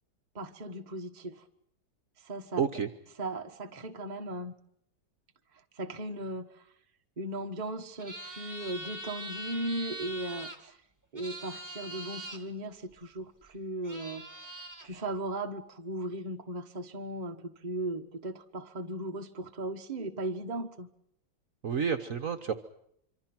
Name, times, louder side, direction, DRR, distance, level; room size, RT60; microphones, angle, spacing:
voice 1, 0.3-1.4 2.2-2.7 3.2-4.5 5.7-6.6 7.2-10.8 11.1-20.9, right 1 dB, 25° right, 4 dB, 1.3 m, -37 dB
voice 2, 2.6-2.9 21.6-22.5, right 6 dB, 50° right, 6 dB, 1.4 m, -29 dB
sound 1, 8.0-10.6 11.2-12.4 13.4-13.5 13.8-14.9, right 1 dB, 10° right, 1.9 m, -42 dB
26.0 x 25.0 x 6.1 m, 0.71 s
omnidirectional pair, 2.0 m